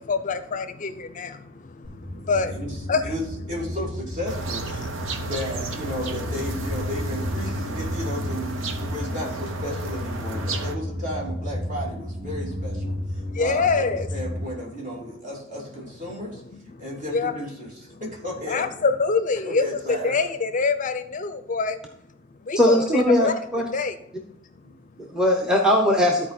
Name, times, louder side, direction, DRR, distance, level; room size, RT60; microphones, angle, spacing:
voice 1, 0.0-2.6 2.9-3.1 4.8-5.2 13.1-14.1 16.3-16.9 17.1-17.3 17.9-18.0 18.5-21.8 22.3-23.3 23.7-24.0 24.3-24.4 24.7-25.1, left 4 dB, 40° left, 11 dB, 0.5 m, -26 dB
sound 1, 1.8-14.5, left 1 dB, 75° right, 3.6 m, -32 dB
voice 2, 2.5-4.7 5.2-16.4 16.8-18.7 19.4-20.2 24.5-24.7, left 1 dB, 45° right, -3 dB, 3.2 m, -34 dB
sound 2, 4.3-10.7, right 3 dB, 90° right, 0.9 m, -33 dB
voice 3, 22.6-23.6 25.0-26.3, left 1 dB, 5° right, 2 dB, 0.8 m, -20 dB
13.0 x 4.5 x 4.3 m, 0.83 s
head